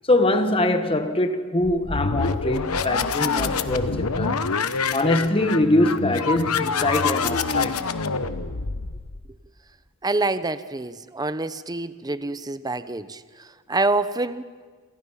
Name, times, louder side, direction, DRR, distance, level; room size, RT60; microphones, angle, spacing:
voice 1, 0.1-4.5 4.9-7.8, left 1 dB, 25° left, 1.4 m, -23 dB
sound 1, 1.6-9.3, left 4 dB, 80° left, 1.1 m, -26 dB
voice 2, 10.0-14.5, right 2 dB, 20° right, 0.7 m, -26 dB
28.0 x 27.5 x 5.7 m
head